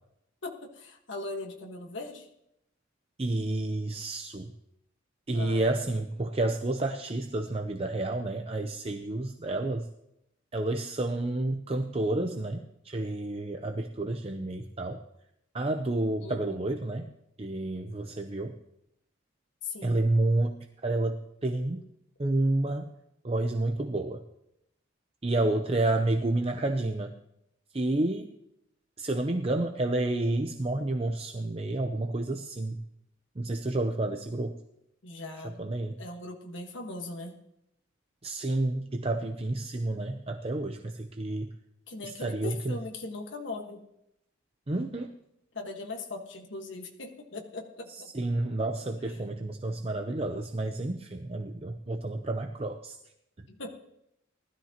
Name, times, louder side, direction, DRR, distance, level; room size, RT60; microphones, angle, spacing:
voice 1, 0.4-2.3 5.3-5.7 16.2-16.6 19.6-20.0 35.0-35.6 36.0-37.4 41.9-43.8 45.5-48.1 53.5-53.7, left 2 dB, 65° left, 1 dB, 1.6 m, -39 dB
voice 2, 3.2-4.5 5.3-9.9 10.5-15.0 15.5-17.1 17.4-18.6 19.8-21.9 22.2-22.9 23.2-24.2 25.2-27.1 27.7-28.3 29.0-32.8 33.4-34.6 35.4-36.0 38.2-41.6 42.0-42.8 44.7-45.1 47.9-53.0, right 2 dB, 30° right, 5 dB, 0.7 m, -30 dB
19.5 x 13.0 x 2.9 m, 0.80 s
head